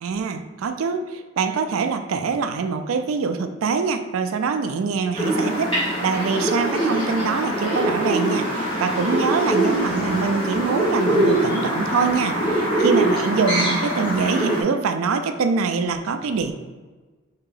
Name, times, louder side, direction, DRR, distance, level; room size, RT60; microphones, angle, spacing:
voice 1, 0.0-5.7 6.0-16.5, right 5 dB, 80° right, 8 dB, 0.4 m, -24 dB
sound 1, 5.1-14.6, right 1 dB, 25° left, 1.1 m, -23 dB
3.6 x 2.8 x 3.8 m, 1.3 s
head